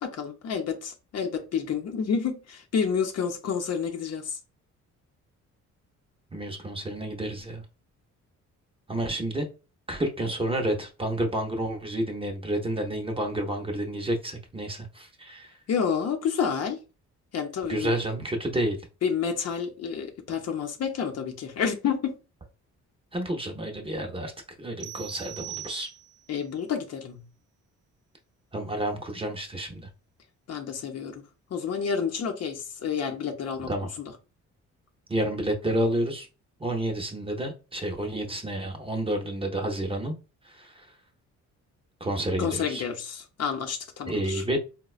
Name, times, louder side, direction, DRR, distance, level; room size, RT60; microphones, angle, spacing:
voice 1, 0.0-4.4 15.7-16.8 17.3-17.9 19.0-22.1 26.3-27.2 30.5-31.2 31.5-33.7 34.0-34.1 42.4-44.4, left 6 dB, 55° left, 0.7 m, -29 dB
voice 2, 6.3-7.6 8.9-9.5 9.9-15.5 17.6-18.8 23.1-24.3 24.6-25.9 28.5-29.9 33.7-33.9 35.1-36.3 36.6-40.2 40.4-40.9 42.0-42.8 44.1-44.6, right 1 dB, 20° right, 0.7 m, -30 dB
sound 1, 24.8-26.3, right 14 dB, 85° right, 0.7 m, -41 dB
3.9 x 2.1 x 2.4 m
cardioid pair, 90°, 30 cm